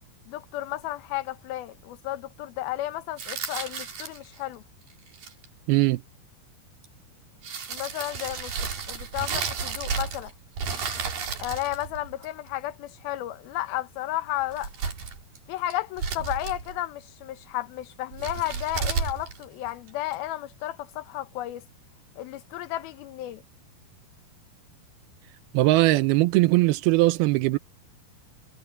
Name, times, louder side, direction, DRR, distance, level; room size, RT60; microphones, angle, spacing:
voice 1, 0.3-4.6 7.7-10.3 11.4-14.7 15.5-21.6 22.2-23.4, left 15 dB, 75° left, 2.8 m, -33 dB
sound 1, 3.2-4.4 5.1-5.5 6.8-6.9 7.4-10.3 10.6-12.5 14.4-15.4 15.7-16.8 18.1-20.1, right 6 dB, 60° right, 5.2 m, -32 dB
voice 2, 5.7-6.0 25.5-27.6, right 19 dB, 80° right, 2.6 m, -20 dB
omnidirectional pair, 4.5 m